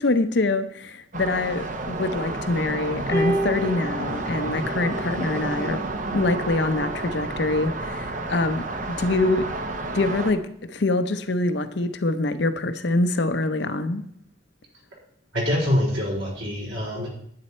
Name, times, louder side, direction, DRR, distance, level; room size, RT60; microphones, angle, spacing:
voice 1, 0.0-5.8 6.1-9.5 9.9-14.0, left 2 dB, 65° left, 10 dB, 0.7 m, -25 dB
sound 1, 1.1-10.3, right 2 dB, 45° right, 1.0 m, -30 dB
sound 2, 3.1-5.6 6.6-6.8, right 1 dB, 25° right, 4.4 m, -30 dB
voice 2, 15.3-17.1, left 1 dB, 85° right, -5 dB, 4.4 m, -25 dB
10.5 x 9.5 x 4.3 m, 0.70 s
head